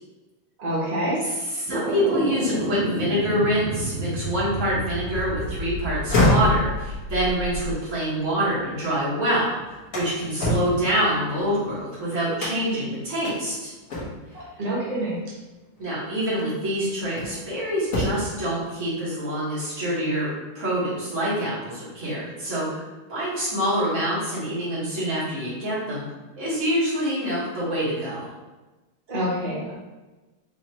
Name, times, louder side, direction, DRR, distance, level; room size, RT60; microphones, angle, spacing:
voice 1, 0.6-1.2 14.3-15.2 29.1-29.7, right 1 dB, 55° right, -6 dB, 0.4 m, -27 dB
voice 2, 1.2-13.7 15.8-20.3 20.5-26.0 26.4-28.3, equal, 40° right, -9 dB, 1.8 m, -26 dB
sound 1, 1.7-7.8, equal, 85° right, 1.7 m, -30 dB
sound 2, 5.9-9.0 9.4-11.8 12.4-12.8 13.2-13.4 13.9-14.4 15.6-15.8 16.4-17.5 17.8-18.4, left 1 dB, 50° left, 1.3 m, -27 dB
4.9 x 2.7 x 2.9 m, 1.2 s
omnidirectional pair, 2.2 m